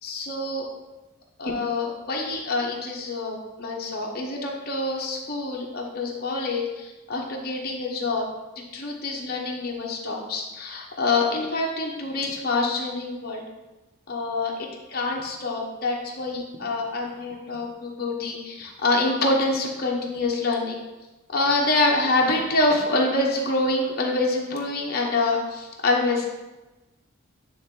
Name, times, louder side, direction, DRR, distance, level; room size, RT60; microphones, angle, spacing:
voice 1, 0.0-0.6 1.4-8.2 8.7-13.4 14.1-20.8 21.3-26.2, left 2 dB, 45° left, -2 dB, 1.1 m, -26 dB
10.0 x 3.3 x 3.8 m, 1.1 s
head